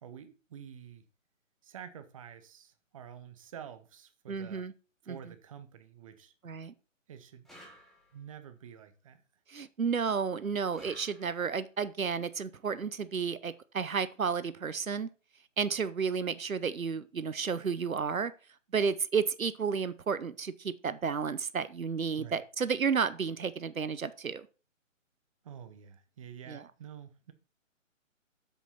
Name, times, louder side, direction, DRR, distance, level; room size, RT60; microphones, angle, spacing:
voice 1, 0.0-1.0 1.6-4.6 5.0-6.3 7.1-7.5 8.1-9.2 22.2-22.4 25.4-27.3, right 8 dB, 25° right, 0.8 m, -48 dB
voice 2, 4.3-4.7 5.1-5.2 6.4-6.7 9.5-15.1 15.6-18.3 18.7-24.5 26.5-26.6, right 6 dB, 85° right, 0.8 m, -32 dB
sound 1, 7.4-8.4 10.7-11.7, right 1 dB, ahead, 1.8 m, -55 dB
7.6 x 7.0 x 4.2 m
figure-of-eight pair, 135°, 40 cm